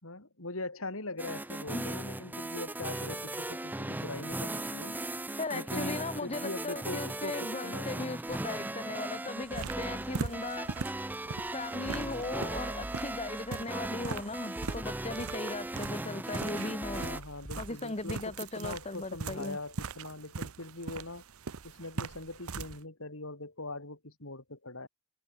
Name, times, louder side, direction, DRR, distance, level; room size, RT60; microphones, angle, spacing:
voice 1, 0.0-5.0 5.5-7.9 16.9-21.2 21.6-24.9, left 2 dB, 70° left, 4.4 m, -41 dB
sound 1, 1.2-17.2, right 1 dB, 10° right, 0.6 m, -38 dB
voice 2, 5.4-10.7 11.5-17.1 17.6-19.6, left 2 dB, 30° left, 1.2 m, -38 dB
sound 2, 8.3-8.6 9.0-10.5 10.9-11.0 11.5-11.6 11.9-15.5 15.8-15.9 16.5-16.6 16.8-17.7, right 1 dB, 25° right, 1.5 m, -48 dB
sound 3, 9.4-22.8, right 4 dB, 80° right, 0.9 m, -41 dB
head